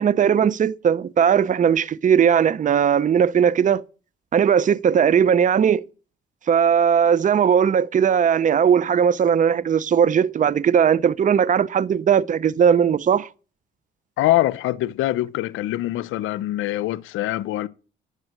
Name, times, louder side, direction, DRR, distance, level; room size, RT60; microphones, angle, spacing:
voice 1, 0.0-3.8 4.3-5.8 6.5-13.3, right 8 dB, 40° right, 0.6 m, -18 dB
voice 2, 14.2-17.7, left 15 dB, 85° left, 0.6 m, -23 dB
11.0 x 8.2 x 8.9 m
cardioid pair, 90°, 20 cm